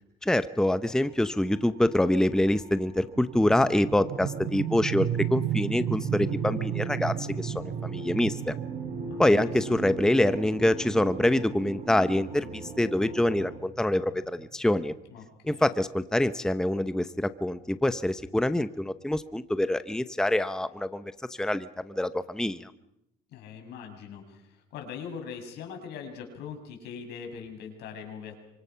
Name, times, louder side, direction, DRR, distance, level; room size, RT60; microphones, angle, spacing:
voice 1, 0.2-8.5 9.2-14.9 15.4-21.1 21.4-22.7, left 1 dB, 5° left, 12 dB, 0.9 m, -25 dB
sound 1, 0.8-13.6, right 2 dB, 50° right, 6.8 m, -41 dB
sound 2, 3.2-14.6, right 11 dB, 80° right, 5.8 m, -34 dB
voice 2, 9.1-9.8 15.1-15.7 23.3-28.4, left 6 dB, 80° left, 4 dB, 6.6 m, -42 dB
28.0 x 25.5 x 5.8 m, 0.83 s
cardioid pair, 110°, 17 cm